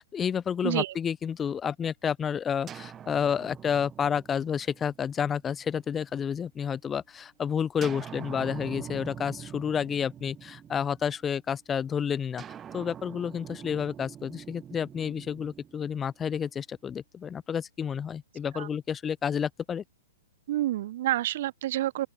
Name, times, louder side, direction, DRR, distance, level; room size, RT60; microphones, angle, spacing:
voice 1, 0.0-12.4 12.7-19.8, left 7 dB, 20° left, 0.3 m, -30 dB
voice 2, 0.6-0.9 18.5-18.7 20.5-22.1, right 14 dB, 50° right, 0.7 m, -28 dB
sound 1, 2.7-6.5 7.8-11.4 12.4-16.5, right 9 dB, 20° right, 5.2 m, -44 dB
open air
figure-of-eight pair, 115°, 0 cm